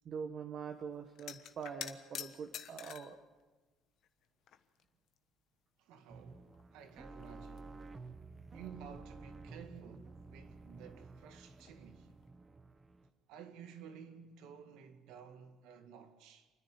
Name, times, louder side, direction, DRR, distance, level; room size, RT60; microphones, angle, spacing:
voice 1, 0.0-3.2, right 6 dB, 50° right, 1.4 m, -44 dB
sound 1, 1.1-3.2 4.0-4.8 5.1-5.2 6.5-6.6 6.9-8.0 11.6-11.8 12.1-12.3, left 10 dB, 65° left, 1.2 m, -47 dB
voice 2, 5.8-7.8 8.5-12.1 13.3-16.5, right 7 dB, 90° right, 2.0 m, -53 dB
sound 2, 6.1-13.1, right 3 dB, 25° right, 1.2 m, -52 dB
28.0 x 10.5 x 9.3 m
cardioid pair, 115°, 0 cm